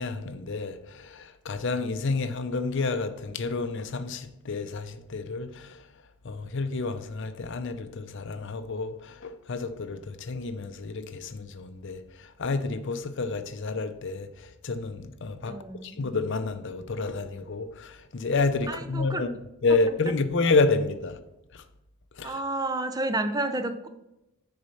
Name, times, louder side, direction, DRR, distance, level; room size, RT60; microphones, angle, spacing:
voice 1, 0.0-5.8 6.2-15.6 15.8-19.3 19.6-21.2 21.5-21.6 22.2-22.4, left 3 dB, 55° left, 0.5 m, -29 dB
voice 2, 15.4-16.0 18.7-19.3 22.2-23.9, right 2 dB, 15° right, 0.4 m, -30 dB
6.5 x 4.1 x 5.6 m
head